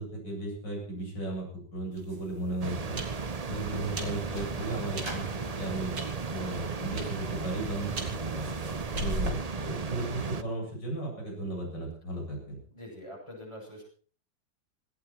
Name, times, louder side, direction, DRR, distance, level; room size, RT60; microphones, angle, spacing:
voice 1, 0.0-3.0 3.5-5.9 6.3-7.9 8.3-8.5 9.0-12.6, right 1 dB, 80° left, -2 dB, 8.8 m, -35 dB
sound 1, 1.9-9.3, right 2 dB, 80° right, 3.8 m, -40 dB
sound 2, 2.6-10.4, right 4 dB, 35° right, 0.6 m, -35 dB
Sliding door, 4.0-10.3, right 1 dB, 15° right, 2.3 m, -49 dB
voice 2, 12.7-13.8, equal, 15° left, -2 dB, 7.9 m, -44 dB
18.0 x 17.5 x 4.6 m, 0.43 s
omnidirectional pair, 1.9 m